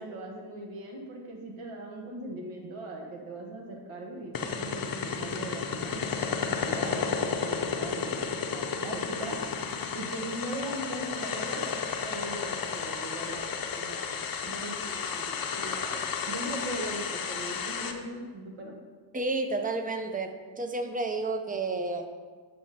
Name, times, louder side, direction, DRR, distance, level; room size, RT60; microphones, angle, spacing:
voice 1, 0.0-9.4 9.9-18.7, right 1 dB, 80° right, 0 dB, 1.7 m, -40 dB
sound 1, 4.3-17.9, left 6 dB, 45° left, 0.7 m, -32 dB
voice 2, 19.1-22.1, right 3 dB, 20° right, 7 dB, 0.5 m, -31 dB
7.6 x 5.9 x 4.2 m, 1.5 s
wide cardioid pair, 145°, 49 cm